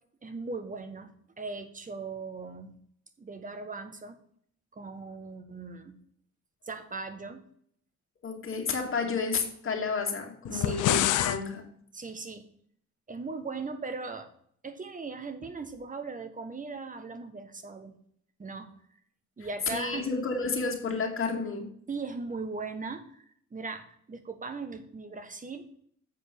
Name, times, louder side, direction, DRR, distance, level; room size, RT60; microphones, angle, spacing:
voice 1, 0.2-2.8 3.2-4.2 4.7-6.0 6.6-7.5 10.5-11.0 11.9-12.5 13.1-14.3 14.6-18.0 18.4-18.7 19.4-20.1 21.9-23.2 23.5-25.8, right 4 dB, 25° right, 8 dB, 1.3 m, -39 dB
voice 2, 8.2-11.7 19.7-21.7, left 4 dB, 45° left, 0 dB, 2.4 m, -31 dB
sound 1, 10.4-11.4, left 14 dB, 85° left, 0.5 m, -26 dB
7.9 x 4.7 x 6.8 m, 0.64 s
cardioid pair, 90°, 30 cm